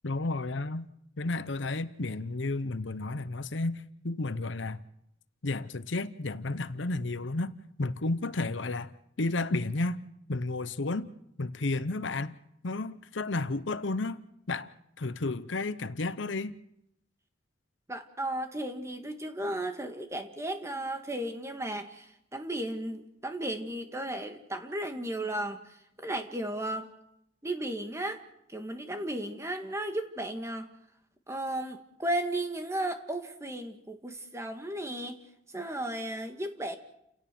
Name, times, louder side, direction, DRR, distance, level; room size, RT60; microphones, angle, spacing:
voice 1, 0.0-0.9 1.2-4.8 5.4-7.5 7.8-8.9 9.2-10.0 10.3-11.1 11.4-12.4 12.6-14.2 14.5-14.7 15.0-16.5, left 2 dB, 70° left, 0.9 m, -32 dB
voice 2, 17.9-22.1 22.3-25.6 26.0-26.9 27.4-28.2 28.5-30.7 31.3-35.2 35.5-36.8, right 1 dB, 15° right, 1.7 m, -34 dB
29.5 x 17.0 x 6.1 m
head